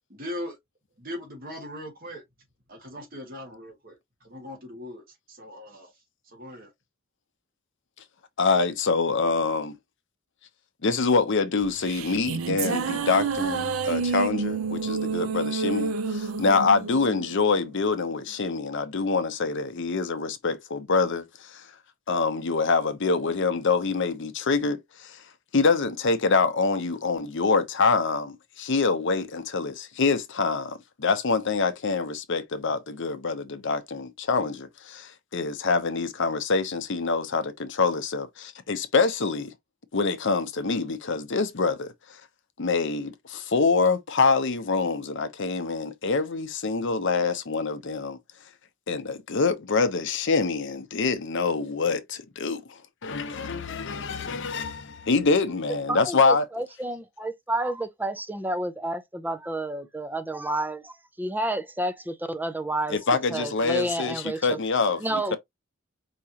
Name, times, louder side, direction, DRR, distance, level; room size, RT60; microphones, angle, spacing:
voice 1, 0.1-0.6 1.0-2.2 2.7-5.9 6.3-6.7, left 1 dB, 45° right, 1.8 m, -39 dB
voice 2, 8.4-9.7 10.8-21.5 22.1-25.2 25.5-39.5 39.9-41.9 42.6-48.2 48.9-52.6 53.0-56.4 62.9-65.4, left 4 dB, 60° left, 0.7 m, -25 dB
sound 1, 11.6-18.2, right 5 dB, 75° right, 0.5 m, -29 dB
voice 3, 55.9-63.0 63.3-64.6 65.0-65.4, right 1 dB, 10° right, 0.5 m, -30 dB
4.8 x 3.0 x 2.8 m
head